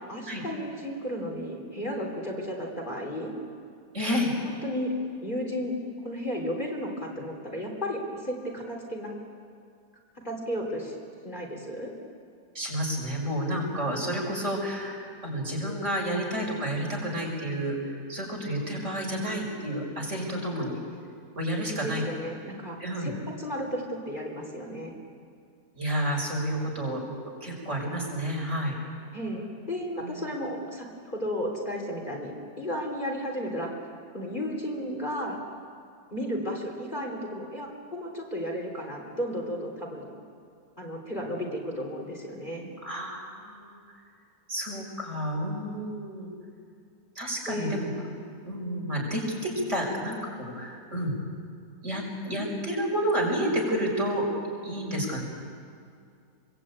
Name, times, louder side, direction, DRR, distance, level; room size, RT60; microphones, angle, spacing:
voice 1, 0.1-3.3 4.6-4.9 5.2-5.7 6.0-9.1 10.2-10.9 11.2-11.9 21.8-23.1 23.4-25.0 29.1-33.7 34.1-35.4 36.1-40.1 40.8-42.7 47.5-47.8, equal, 30° left, 0 dB, 3.9 m, -33 dB
voice 2, 3.9-4.3 12.5-20.8 21.3-22.0 22.8-23.1 25.7-27.0 27.4-28.7 30.0-30.2 42.8-43.8 44.5-46.3 47.2-47.9 48.4-51.1 51.8-54.3 54.6-55.2, equal, 45° right, -1 dB, 5.9 m, -30 dB
25.5 x 23.0 x 8.9 m, 2.4 s
omnidirectional pair, 1.7 m